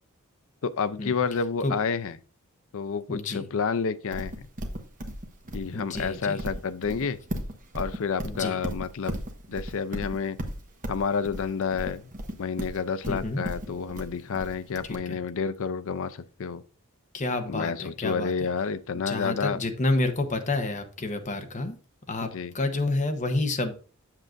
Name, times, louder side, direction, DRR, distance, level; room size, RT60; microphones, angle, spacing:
voice 1, 0.6-2.2 2.7-4.4 5.5-7.2 7.7-9.2 9.5-10.4 10.9-12.0 12.4-16.6 17.5-19.6 22.2-22.5, left 5 dB, 65° left, 0.5 m, -29 dB
voice 2, 3.1-3.5 5.7-6.4 8.2-8.6 13.1-13.4 14.8-15.2 17.1-18.5 19.1-21.8 22.1-22.3 22.5-23.7, left 2 dB, 35° left, 0.9 m, -29 dB
Livestock farm animals working animals, 4.1-14.9, equal, 40° right, 1.2 m, -35 dB
7.5 x 7.5 x 2.5 m
head